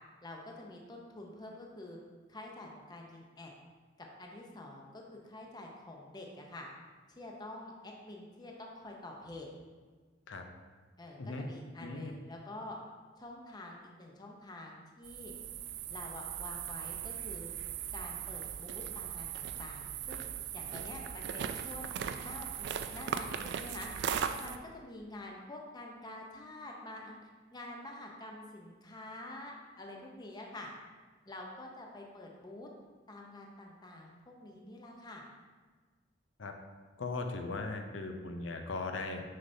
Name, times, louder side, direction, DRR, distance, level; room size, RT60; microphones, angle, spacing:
voice 1, 0.2-2.0 2.3-3.5 4.0-6.7 7.1-9.5 11.0-12.8 13.2-15.3 15.9-17.5 17.9-20.2 20.5-23.9 24.4-27.2 27.5-30.7 31.2-32.7 33.1-35.2, left 1 dB, 20° left, 0 dB, 0.7 m, -47 dB
voice 2, 11.8-12.1 36.4-36.5 37.0-39.2, left 3 dB, 75° left, 5 dB, 0.6 m, -38 dB
sound 1, 15.0-24.6, right 8 dB, 60° right, 0.3 m, -39 dB
6.4 x 5.6 x 2.7 m, 1.4 s
head